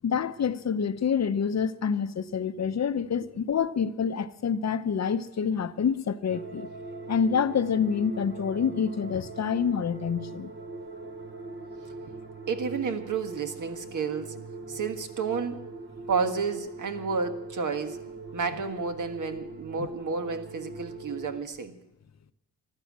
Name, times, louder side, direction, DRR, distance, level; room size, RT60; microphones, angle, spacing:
voice 1, 0.0-6.7 7.1-10.5 19.8-19.9, left 7 dB, 45° left, 0.8 m, -27 dB
sound 1, 6.3-21.4, right 3 dB, 30° right, 1.1 m, -41 dB
voice 2, 12.5-14.4 14.7-15.6 16.1-18.0 18.3-21.8, right 5 dB, 55° right, 1.6 m, -31 dB
15.0 x 12.5 x 7.4 m
cardioid pair, 100°, 37 cm